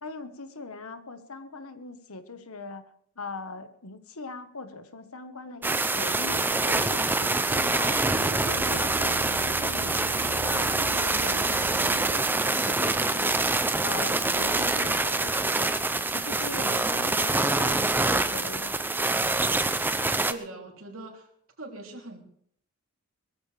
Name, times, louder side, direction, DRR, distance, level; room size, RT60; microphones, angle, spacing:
voice 1, 0.0-2.8 3.1-8.0 8.4-10.0 10.4-13.4 13.8-15.8 16.1-18.8, left 3 dB, 85° left, 9 dB, 1.5 m, -41 dB
sound 1, 5.6-20.3, right 2 dB, 10° right, 0.5 m, -25 dB
sound 2, 6.3-12.2, right 4 dB, 85° right, 0.7 m, -39 dB
voice 2, 20.3-21.3 21.6-22.2, right 2 dB, 70° right, 1 dB, 3.3 m, -41 dB
22.5 x 14.0 x 3.5 m, 0.66 s
head